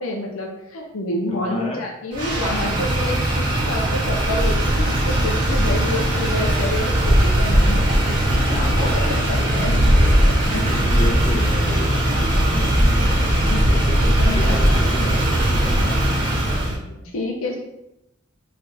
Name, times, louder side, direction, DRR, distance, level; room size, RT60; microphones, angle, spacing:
voice 1, 0.0-7.9 8.8-9.7 10.0-10.6 13.5-13.6 14.0-14.8 17.1-17.6, left 1 dB, 75° left, 1 dB, 0.6 m, -28 dB
voice 2, 1.3-1.8 2.6-3.0 7.6-10.2 10.6-17.1, left 1 dB, 30° left, -2 dB, 0.9 m, -33 dB
Motor vehicle (road), 2.1-16.7, right 1 dB, 40° right, 1.3 m, -19 dB
3.8 x 3.3 x 2.6 m, 0.86 s
head